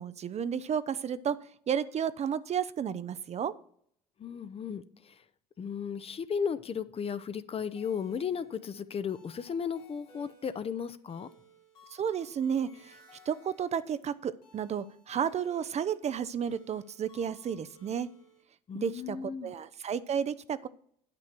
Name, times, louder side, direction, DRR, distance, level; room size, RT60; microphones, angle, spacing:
voice 1, 0.0-1.4 1.7-3.5 11.9-12.9 13.3-18.1 18.7-20.7, right 8 dB, 35° right, 14 dB, 0.5 m, -32 dB
voice 2, 4.2-5.2 5.6-11.3 18.7-19.5, left 7 dB, 30° left, 13 dB, 0.6 m, -35 dB
sound 1, 7.8-18.4, left 1 dB, 80° left, 2.2 m, -60 dB
9.9 x 6.1 x 4.4 m, 0.64 s
figure-of-eight pair, 60°, 20 cm